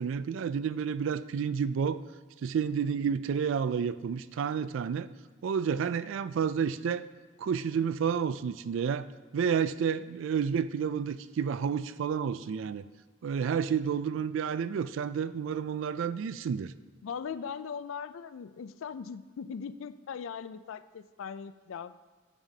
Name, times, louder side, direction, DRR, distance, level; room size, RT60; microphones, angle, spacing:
voice 1, 0.0-2.0 2.4-5.1 5.4-7.1 7.4-9.1 9.3-12.8 13.2-16.7, right 7 dB, 70° right, 14 dB, 0.3 m, -30 dB
voice 2, 17.0-21.9, left 6 dB, 80° left, 14 dB, 0.4 m, -39 dB
9.0 x 8.9 x 2.8 m, 1.5 s
head